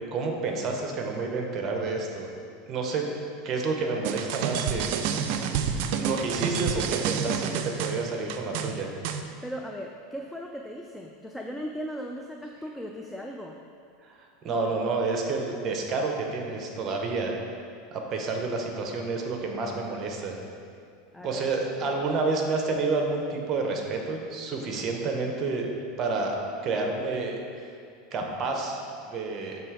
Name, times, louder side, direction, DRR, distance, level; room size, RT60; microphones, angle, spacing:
voice 1, 0.1-2.3 2.7-3.0 3.4-5.1 5.9-8.9 14.0-17.4 17.9-20.4 21.2-25.7 26.0-26.4 26.6-27.4 28.1-28.8 29.0-29.6, right 3 dB, 40° right, 2 dB, 0.9 m, -29 dB
sound 1, 4.0-9.2, right 7 dB, 65° right, 0.4 m, -29 dB
voice 2, 9.4-13.6 20.7-20.8 21.1-21.5 21.8-22.0, equal, 5° left, 1 dB, 0.3 m, -38 dB
6.9 x 3.2 x 4.9 m, 2.4 s
supercardioid pair, 120°, 0 cm